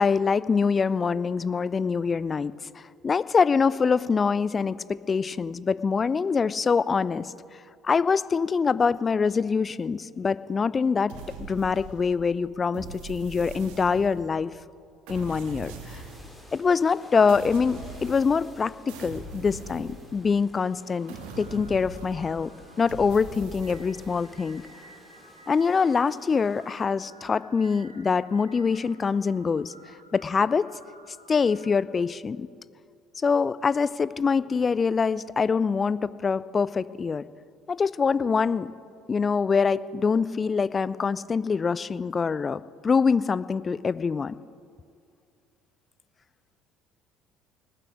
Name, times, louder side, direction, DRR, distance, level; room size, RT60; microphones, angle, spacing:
voice 1, 0.0-7.3 7.8-11.1 11.4-14.5 15.1-16.0 16.5-22.5 22.8-24.6 25.5-29.7 30.1-30.7 31.3-32.5 33.2-37.2 37.7-38.7 39.1-44.3, left 5 dB, 30° left, 18 dB, 0.4 m, -24 dB
sound 1, 11.1-12.2 12.7-14.4 15.1-16.4 17.3-18.6 18.9-20.5 21.1-22.4 22.9-24.2, right 3 dB, 60° right, 2.1 m, -41 dB
sound 2, 15.9-26.9, left 1 dB, 10° left, 2.9 m, -53 dB
sound 3, 20.7-31.8, right 2 dB, 85° right, 0.9 m, -54 dB
18.5 x 7.3 x 9.9 m, 2.2 s
figure-of-eight pair, 55°, 0 cm